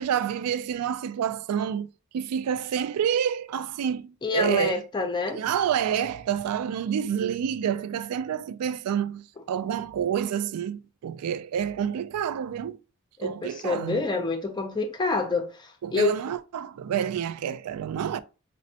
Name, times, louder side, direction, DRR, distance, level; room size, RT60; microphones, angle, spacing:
voice 1, 0.0-1.9 2.1-4.8 5.3-12.8 13.2-14.0 15.8-18.2, right 8 dB, 85° right, 0.3 m, -28 dB
voice 2, 4.2-5.4 13.2-16.2, left 3 dB, 20° left, 0.4 m, -27 dB
5.1 x 2.1 x 2.7 m
head